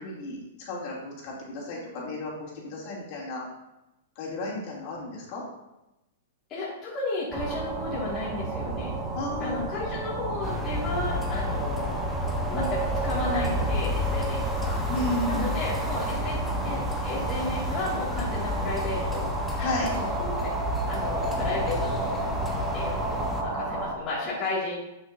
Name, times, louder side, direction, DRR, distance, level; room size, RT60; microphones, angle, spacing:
voice 1, 0.0-3.4 4.2-5.4 9.1-9.7 14.9-15.6 19.6-19.9, left 2 dB, 45° left, -4 dB, 2.9 m, -33 dB
voice 2, 6.5-9.0 9.4-12.0 12.5-14.8 15.2-19.3 19.9-22.1 22.7-24.8, left 2 dB, 30° left, -8 dB, 2.3 m, -33 dB
sound 1, 7.3-23.9, right 3 dB, 15° right, 1.1 m, -32 dB
sound 2, 10.4-23.4, left 1 dB, 10° left, 1.0 m, -31 dB
9.6 x 6.2 x 2.7 m, 0.94 s
hypercardioid pair, 145°, 0 cm